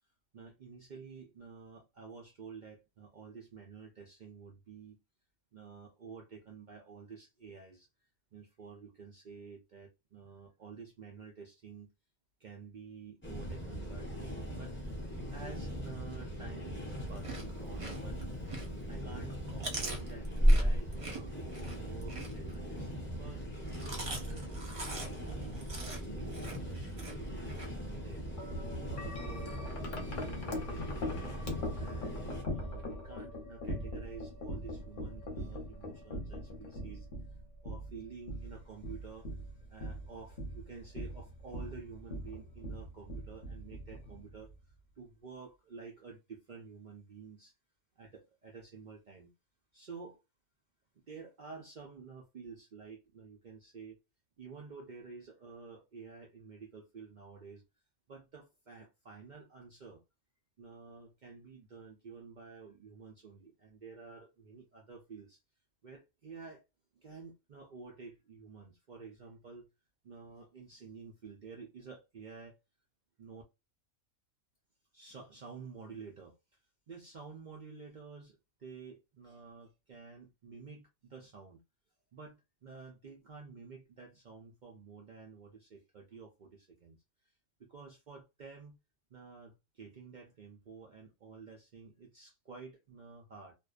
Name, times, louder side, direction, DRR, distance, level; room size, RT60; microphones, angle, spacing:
voice 1, 0.3-5.0 5.5-7.9 8.3-11.9 12.4-14.7 15.3-18.2 18.9-28.5 28.8-31.3 31.8-37.1 37.6-44.5 45.0-47.5 48.0-49.3 49.7-50.2 51.1-54.0 54.4-57.6 58.1-60.0 60.6-65.4 65.8-66.6 66.9-69.7 70.0-72.6 73.2-73.4 74.9-76.4 76.9-81.6 82.1-87.0 87.2-87.3 87.6-88.8 89.1-93.5, right 5 dB, 75° right, 0.4 m, -51 dB
sound 1, 13.2-32.4, equal, 15° left, 0.5 m, -36 dB
Chewing mastication, 17.0-18.9 19.3-22.8 23.5-27.7, right 2 dB, 35° right, 0.6 m, -44 dB
Wind chime, 28.4-44.6, left 1 dB, 45° left, 0.8 m, -41 dB
2.5 x 2.1 x 2.3 m
omnidirectional pair, 1.5 m